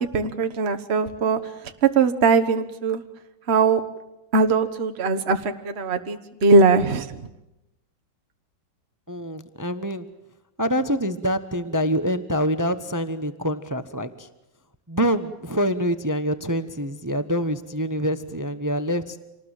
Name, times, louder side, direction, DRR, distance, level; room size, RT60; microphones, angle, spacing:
voice 1, 0.1-1.4 1.8-3.0 3.5-3.8 4.3-7.2, right 4 dB, 35° right, 7 dB, 1.5 m, -20 dB
voice 2, 9.1-10.1 10.6-14.3 14.9-19.2, equal, 15° right, 12 dB, 0.7 m, -25 dB
27.0 x 19.5 x 9.0 m, 0.91 s
omnidirectional pair, 2.1 m